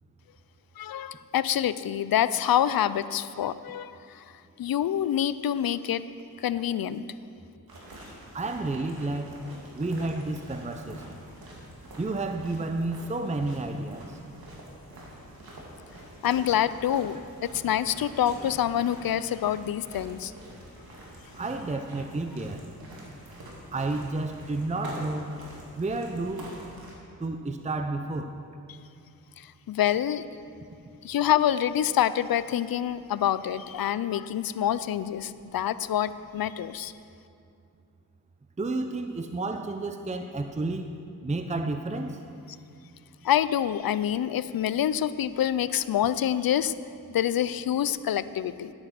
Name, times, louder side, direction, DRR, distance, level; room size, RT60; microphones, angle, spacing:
voice 1, 0.8-4.3 4.6-6.1 6.4-7.0 16.2-20.3 29.4-30.2 31.0-36.9 43.2-46.7 47.1-48.7, left 10 dB, 75° left, 15 dB, 0.5 m, -26 dB
sound 1, 7.7-26.9, right 1 dB, 85° right, 2.4 m, -45 dB
voice 2, 8.3-9.4 9.7-11.2 12.0-14.2 21.3-22.7 23.7-25.3 25.8-26.5 27.2-28.3 38.6-40.9 41.2-42.2, right 2 dB, 20° right, 6 dB, 0.7 m, -31 dB
12.5 x 8.8 x 5.9 m, 2.5 s
cardioid pair, 60°, 35 cm